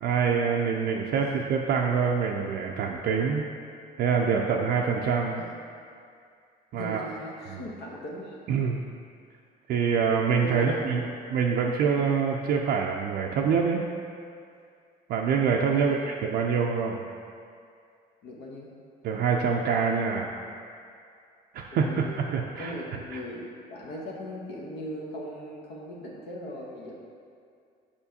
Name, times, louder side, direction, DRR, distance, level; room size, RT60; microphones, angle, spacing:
voice 1, 0.0-3.5 4.0-5.4 6.7-7.0 8.5-8.8 9.7-11.0 11.3-13.8 15.1-17.0 19.0-20.3 21.5-22.7 23.1-23.2, right 6 dB, 65° right, 0 dB, 0.4 m, -25 dB
voice 2, 6.7-8.4 10.4-11.1 15.7-16.2 18.2-18.7 21.7-22.2 22.6-26.9, equal, 80° left, -3 dB, 1.1 m, -39 dB
6.9 x 5.0 x 2.8 m, 2.3 s
cardioid pair, 110°, 17 cm